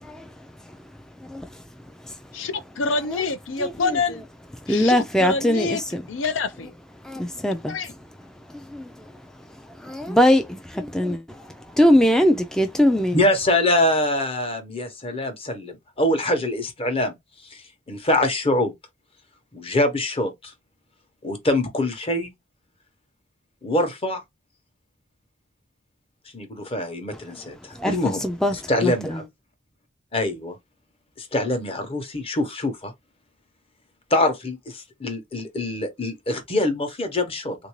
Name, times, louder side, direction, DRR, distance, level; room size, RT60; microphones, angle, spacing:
voice 1, 2.3-4.2 4.7-5.8 6.1-6.7 7.7-7.9, left 4 dB, 80° left, 0.5 m, -26 dB
voice 2, 3.6-4.0 4.7-6.0 7.1-7.7 8.7-8.8 9.9-11.2 11.8-13.2 27.8-27.9 28.2-28.5 28.8-28.9, equal, 5° left, 0.3 m, -20 dB
voice 3, 13.1-17.1 17.9-18.7 19.5-20.5 21.2-22.3 23.6-24.2 26.3-28.2 28.5-29.2 30.1-30.5 31.2-32.9 34.1-37.6, left 1 dB, 30° left, 0.9 m, -24 dB
3.5 x 2.6 x 3.0 m
head